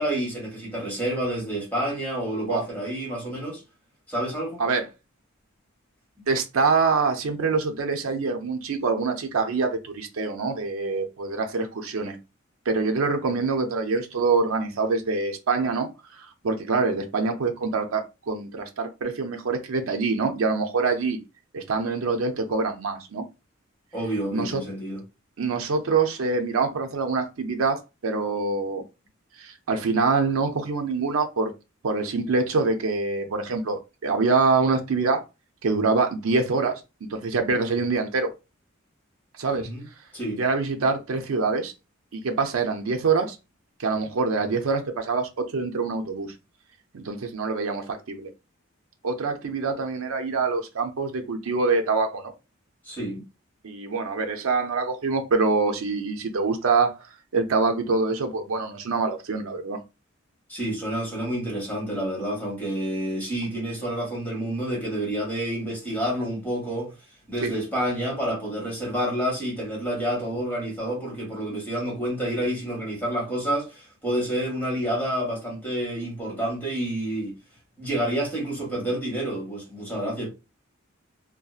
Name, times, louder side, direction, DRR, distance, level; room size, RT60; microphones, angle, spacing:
voice 1, 0.0-3.6 4.1-4.6 23.9-25.0 39.6-39.8 40.1-40.4 52.8-53.2 60.5-66.9 67.3-77.3 77.8-80.3, right 1 dB, 10° left, 1.2 m, -29 dB
voice 2, 6.3-12.2 12.7-21.2 21.5-23.2 24.3-24.6 25.4-28.8 29.4-31.5 31.8-35.2 35.6-38.3 39.4-39.7 40.4-41.7 42.1-43.4 43.8-46.3 46.9-48.3 49.0-52.3 53.6-56.9 57.3-59.8 67.4-67.6, right 4 dB, 90° right, 0.5 m, -25 dB
2.7 x 2.2 x 2.3 m
head